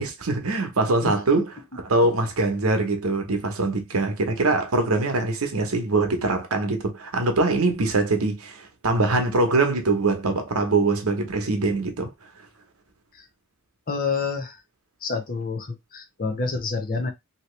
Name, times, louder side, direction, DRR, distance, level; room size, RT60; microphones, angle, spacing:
voice 1, 0.0-1.5 1.8-12.1, right 3 dB, 90° right, 0.9 m, -23 dB
voice 2, 13.9-14.6 15.0-17.1, left 4 dB, 40° left, 0.7 m, -28 dB
2.9 x 2.8 x 3.1 m
head